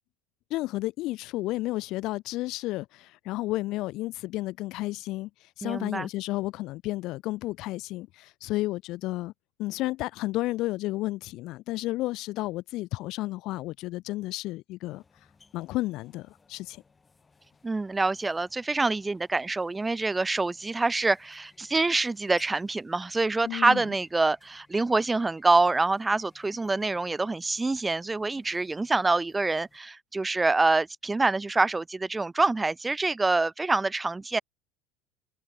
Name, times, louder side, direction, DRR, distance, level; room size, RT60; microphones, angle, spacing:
voice 1, 0.5-5.3 5.6-9.3 9.6-15.0 15.5-16.8 23.5-23.8, left 18 dB, 50° left, 0.9 m, -32 dB
voice 2, 5.6-6.1 17.6-34.4, right 3 dB, 15° right, 0.8 m, -26 dB
sound 1, 14.9-29.8, left 4 dB, 20° left, 5.6 m, -62 dB
figure-of-eight pair, 70°, 0 cm